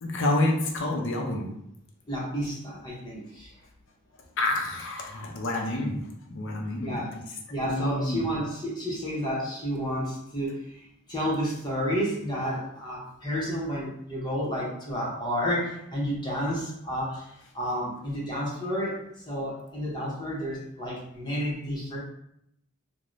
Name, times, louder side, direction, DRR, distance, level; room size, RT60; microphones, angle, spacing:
voice 1, 0.0-1.5 4.4-6.0 6.3-7.0 7.6-8.2, left 1 dB, 60° left, 1 dB, 0.5 m, -28 dB
voice 2, 2.1-3.5 6.8-7.2 7.5-22.0, equal, 20° left, -5 dB, 0.7 m, -31 dB
3.0 x 2.0 x 2.5 m, 0.75 s
head